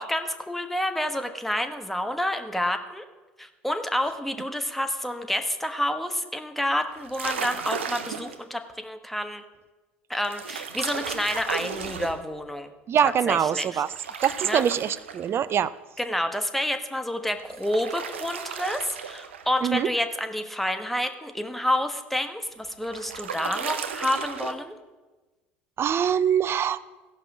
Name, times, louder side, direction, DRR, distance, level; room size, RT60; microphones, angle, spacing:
voice 1, 0.0-3.0 3.4-9.4 10.1-12.7 13.0-13.8 14.1-14.7 16.0-24.8, left 1 dB, 5° left, 7 dB, 1.2 m, -29 dB
sound 1, 6.9-8.4 10.2-12.2 13.9-15.5 17.4-19.5 22.5-24.5, right 7 dB, 90° right, 0.7 m, -35 dB
voice 2, 12.9-13.9 14.2-15.7 19.6-19.9 25.8-26.8, right 8 dB, 40° right, 17 dB, 0.5 m, -23 dB
16.0 x 5.5 x 6.1 m, 1.2 s
hypercardioid pair, 75°, 6 cm